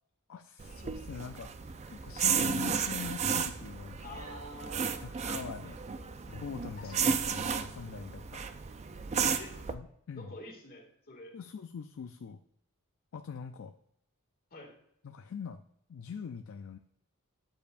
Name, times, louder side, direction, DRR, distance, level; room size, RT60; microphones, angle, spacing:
voice 1, 0.3-1.5 1.9-4.2 5.0-5.8 6.3-8.4 9.7-10.3 11.3-12.4 13.1-13.7 15.0-15.6 15.9-16.8, left 6 dB, 60° left, 8 dB, 0.4 m, -43 dB
sound 1, 0.6-9.7, right 6 dB, 30° right, 0.4 m, -33 dB
voice 2, 4.0-5.1 6.0-6.2 6.8-7.0 9.4-9.6 10.1-11.3 14.5-14.7, left 1 dB, 40° left, -1 dB, 2.2 m, -47 dB
9.4 x 6.8 x 2.5 m, 0.73 s
head